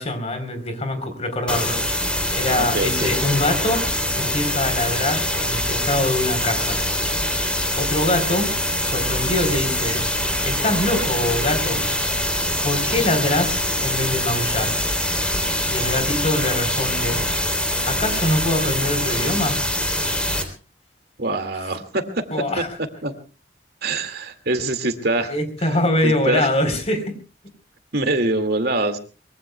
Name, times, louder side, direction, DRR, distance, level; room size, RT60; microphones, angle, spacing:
voice 1, 0.0-2.0 2.3-3.9 4.2-6.8 7.8-8.5 8.8-10.0 10.4-11.8 12.6-14.8 15.7-17.2 17.9-19.6 22.3-22.7 25.3-27.2, left 1 dB, 40° left, 8 dB, 3.8 m, -24 dB
sound 1, 1.5-20.4, left 1 dB, 5° left, 3.2 m, -23 dB
voice 2, 2.6-3.1 21.2-22.2 22.6-22.7 23.0-23.1 23.8-25.3 25.6-25.7 26.0-26.5 27.9-29.0, right 2 dB, 60° right, 7 dB, 2.2 m, -24 dB
24.0 x 23.0 x 2.3 m, 0.35 s
head